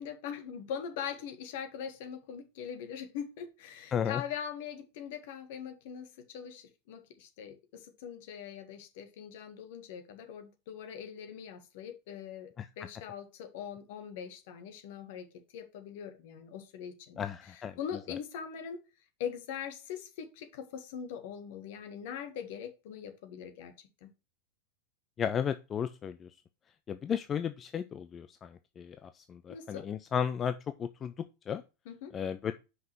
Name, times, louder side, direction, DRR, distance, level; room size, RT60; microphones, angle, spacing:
voice 1, 0.0-12.5 12.8-15.3 15.5-17.2 17.5-18.8 19.2-23.7 24.0-24.1 29.5-29.9 31.8-32.1, left 8 dB, 55° left, 7 dB, 1.6 m, -42 dB
voice 2, 3.9-4.2 12.6-12.7 17.2-17.8 25.2-26.3 26.9-31.1 31.5-31.6 32.1-32.5, left 8 dB, 25° left, 11 dB, 0.5 m, -34 dB
5.6 x 5.5 x 5.9 m, 0.28 s
figure-of-eight pair, 90°, 0 cm